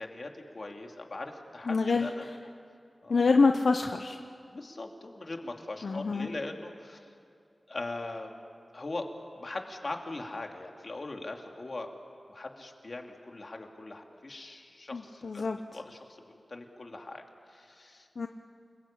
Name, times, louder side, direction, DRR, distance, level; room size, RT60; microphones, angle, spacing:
voice 1, 0.0-2.3 3.0-3.2 4.5-7.1 7.7-8.3 8.7-9.1 9.4-11.9 12.3-15.5 15.7-17.2 17.5-18.1, left 2 dB, 50° left, 3 dB, 2.6 m, -40 dB
voice 2, 1.7-2.3 3.1-4.2 5.8-6.3 14.9-15.6 18.2-18.3, left 4 dB, 80° left, 5 dB, 0.8 m, -26 dB
29.0 x 21.0 x 8.8 m, 2.4 s
wide cardioid pair, 80°, 0 cm